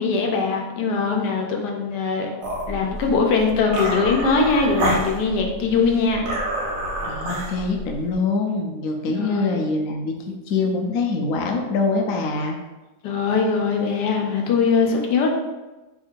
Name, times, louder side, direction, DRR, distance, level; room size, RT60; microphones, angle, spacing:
voice 1, 0.0-2.3 2.7-6.2 9.1-9.6 13.0-15.3, left 4 dB, 85° left, 1 dB, 1.2 m, -21 dB
sound 1, 2.4-8.1, right 1 dB, 80° right, 1.4 m, -28 dB
voice 2, 7.0-12.6, left 3 dB, 70° left, 1 dB, 0.9 m, -24 dB
3.5 x 2.4 x 4.5 m, 1.1 s
omnidirectional pair, 1.7 m